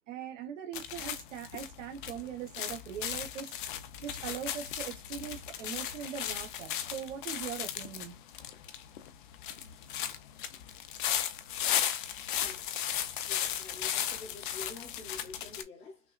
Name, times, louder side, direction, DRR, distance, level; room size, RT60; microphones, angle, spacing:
voice 1, 0.1-3.6 4.0-8.1, right 9 dB, 75° right, 1.3 m, -41 dB
sound 1, 0.7-15.6, left 10 dB, 45° left, 0.6 m, -36 dB
voice 2, 13.3-16.0, left 3 dB, 15° left, 1.0 m, -47 dB
5.7 x 2.3 x 2.4 m
supercardioid pair, 170°, 37 cm